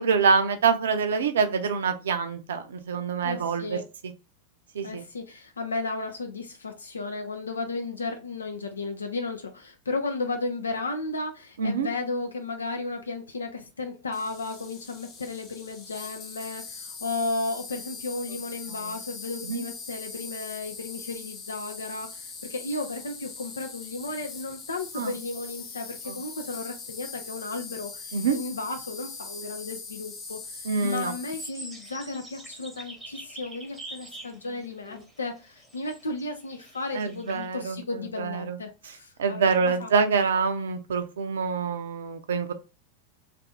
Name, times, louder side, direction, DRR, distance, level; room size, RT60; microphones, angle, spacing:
voice 1, 0.0-3.8 4.7-5.0 11.6-11.9 18.8-18.9 19.4-19.6 25.0-25.1 26.1-26.2 28.1-28.4 30.6-31.1 36.9-38.6 39.2-42.5, right 5 dB, 65° right, 0.4 m, -26 dB
voice 2, 3.2-3.8 4.8-39.9, left 3 dB, 75° left, 0.4 m, -34 dB
Insect, 14.1-31.5, left 4 dB, 30° left, 0.6 m, -41 dB
sound 1, 31.4-37.5, right 1 dB, 5° right, 0.9 m, -44 dB
2.6 x 2.5 x 3.4 m
figure-of-eight pair, 90°, 0 cm